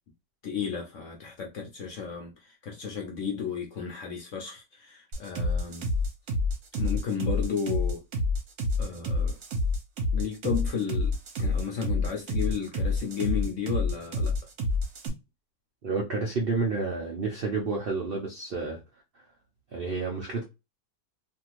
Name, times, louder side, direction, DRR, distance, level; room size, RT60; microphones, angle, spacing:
voice 1, 0.4-5.9 6.8-8.0 8.8-9.3 10.1-14.3, left 7 dB, 60° left, 0.8 m, -33 dB
sound 1, 5.1-15.1, left 2 dB, 60° right, 1.0 m, -28 dB
voice 2, 15.8-18.8 19.7-20.4, right 3 dB, 85° right, 0.5 m, -30 dB
2.7 x 2.5 x 2.9 m
omnidirectional pair, 1.9 m